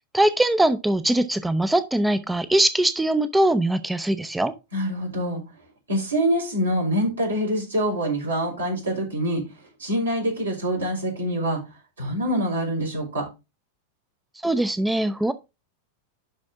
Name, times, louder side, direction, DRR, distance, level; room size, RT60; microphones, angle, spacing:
voice 1, 0.1-4.5 14.4-15.3, right 1 dB, 5° right, 0.5 m, -21 dB
voice 2, 4.7-5.4 5.9-9.4 9.8-11.6 12.0-13.3, equal, 75° right, 4.2 m, -25 dB
11.5 x 4.2 x 3.5 m
figure-of-eight pair, 90°, 0 cm